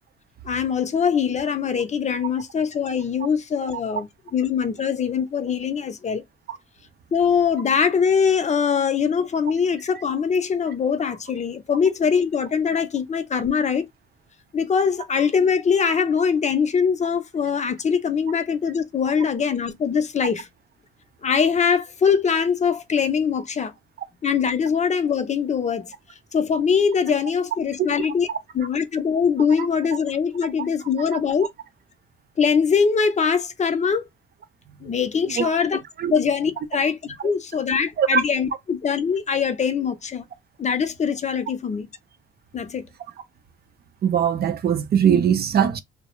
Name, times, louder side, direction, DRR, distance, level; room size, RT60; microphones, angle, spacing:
voice 1, 0.4-6.2 7.1-13.9 14.5-20.5 21.2-23.7 24.2-25.9 26.3-28.3 28.5-31.5 32.4-34.0 34.8-35.8 36.1-40.2 40.6-41.9 42.5-42.9, left 6 dB, 35° left, 0.5 m, -22 dB
voice 2, 44.0-45.8, right 8 dB, 50° right, 0.5 m, -20 dB
2.2 x 2.0 x 3.0 m
cardioid pair, 90°, 20 cm